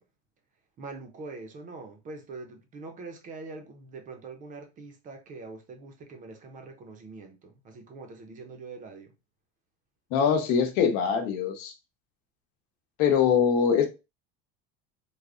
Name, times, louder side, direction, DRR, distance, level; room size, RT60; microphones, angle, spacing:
voice 1, 0.8-9.1, right 3 dB, 25° right, 0.5 m, -43 dB
voice 2, 10.1-11.7 13.0-13.9, left 7 dB, 70° left, 0.9 m, -23 dB
3.4 x 2.1 x 3.6 m
cardioid pair, 170°, 29 cm